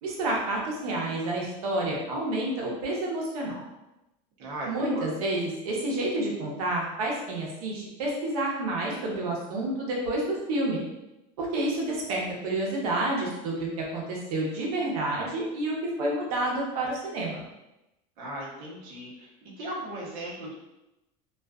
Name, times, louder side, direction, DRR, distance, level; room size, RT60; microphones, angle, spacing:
voice 1, 0.0-3.6 4.6-10.8 11.4-17.4, right 1 dB, 90° right, -2 dB, 0.8 m, -29 dB
voice 2, 4.4-5.1 18.2-19.3 19.6-20.5, right 1 dB, 50° right, -5 dB, 0.9 m, -37 dB
2.4 x 2.3 x 2.3 m, 0.94 s
cardioid pair, 170°, 18 cm